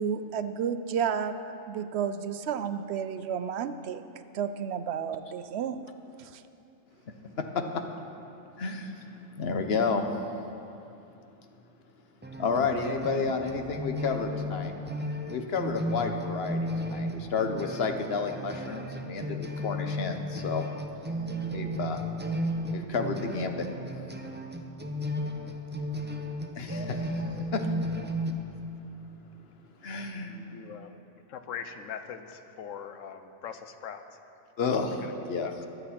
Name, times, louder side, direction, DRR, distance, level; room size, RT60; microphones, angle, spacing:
voice 1, 0.0-1.4 1.7-4.0 4.3-5.8 6.2-6.4, right 7 dB, 65° right, 11 dB, 0.8 m, -31 dB
voice 2, 8.6-10.0 12.4-14.7 15.3-20.6 21.5-22.0 22.7-23.7 26.5-27.7 29.8-30.5 34.6-35.5, left 4 dB, 55° left, 5 dB, 1.1 m, -31 dB
sound 1, 12.2-28.3, equal, 15° right, 0.5 m, -34 dB
voice 3, 30.3-30.9 31.3-34.0 34.8-35.7, left 7 dB, 90° left, 8 dB, 1.1 m, -42 dB
22.5 x 8.2 x 4.3 m, 2.8 s
omnidirectional pair, 1.3 m